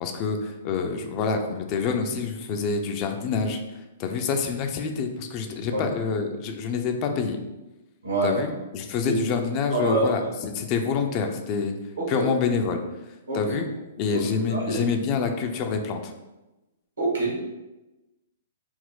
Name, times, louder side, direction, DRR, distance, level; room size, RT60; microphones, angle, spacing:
voice 1, 0.0-3.6 4.0-7.4 8.2-11.7 12.1-12.8 13.3-13.7 14.0-16.1, left 5 dB, 35° left, 5 dB, 0.5 m, -27 dB
voice 2, 8.0-8.5 9.1-9.2 9.7-10.3 12.0-12.3 13.3-13.5 14.1-14.2 14.5-14.8 17.0-17.4, right 2 dB, 80° right, -2 dB, 1.4 m, -26 dB
4.3 x 2.0 x 3.8 m, 1.0 s
figure-of-eight pair, 115°, 0 cm